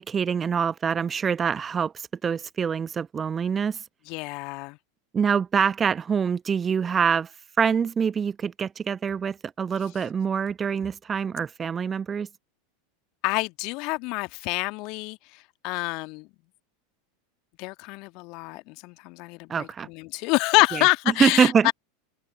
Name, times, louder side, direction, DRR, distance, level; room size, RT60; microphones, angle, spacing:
voice 1, 0.0-3.8 5.1-7.3 7.6-12.3 19.5-19.9 20.7-20.8 21.2-21.7, right 6 dB, 25° right, 1.1 m, -25 dB
voice 2, 4.1-4.8 13.2-16.3 17.6-21.7, left 26 dB, 45° left, 1.5 m, -27 dB
open air
figure-of-eight pair, 85°, 0 cm